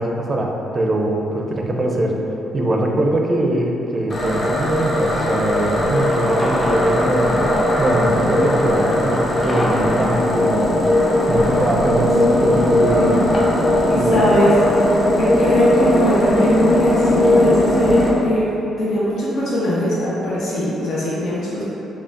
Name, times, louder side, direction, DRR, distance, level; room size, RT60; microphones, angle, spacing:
voice 1, 0.0-2.2 2.5-10.8 11.3-13.2 13.9-14.2, right 1 dB, 35° right, 1 dB, 0.4 m, -21 dB
sound 1, 4.1-18.1, left 1 dB, 40° left, 0.8 m, -18 dB
sound 2, 5.8-12.7, equal, 15° left, 0.5 m, -30 dB
voice 2, 13.9-14.5 15.2-18.5 18.8-21.6, left 1 dB, 75° left, -8 dB, 0.8 m, -20 dB
4.9 x 2.3 x 2.5 m, 3.0 s
cardioid pair, 90°, 0 cm